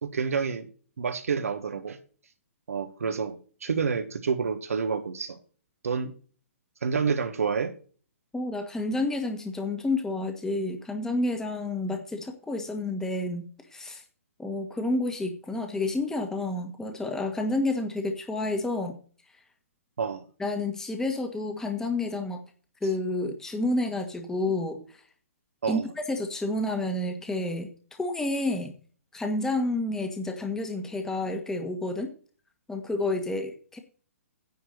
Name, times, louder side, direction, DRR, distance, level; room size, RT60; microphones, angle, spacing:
voice 1, 0.0-0.7 1.0-2.0 2.7-5.4 5.8-6.1 6.8-7.7 20.0-20.2 25.6-25.9, right 5 dB, 75° right, 7 dB, 1.5 m, -28 dB
voice 2, 8.3-13.4 13.7-14.0 14.4-19.0 20.4-22.4 22.8-25.0 25.7-27.7 28.0-28.7 29.1-32.1 32.7-33.8, left 2 dB, 5° left, 5 dB, 1.6 m, -30 dB
10.0 x 4.7 x 7.9 m, 0.40 s
hypercardioid pair, 130°, 8 cm